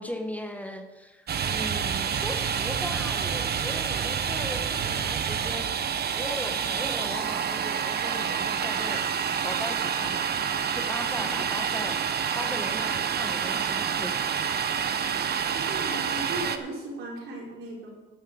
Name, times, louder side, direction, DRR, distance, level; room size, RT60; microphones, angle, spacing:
voice 1, 0.0-9.0 9.3-10.4 10.7-12.0 12.3-14.3, left 1 dB, 5° left, 5 dB, 1.3 m, -38 dB
Domestic sounds home sounds, 1.3-16.6, right 7 dB, 55° right, 1.0 m, -28 dB
voice 2, 15.5-17.9, right 2 dB, 80° right, -3 dB, 4.3 m, -37 dB
12.0 x 5.7 x 7.9 m, 1.2 s
cardioid pair, 90°, 20 cm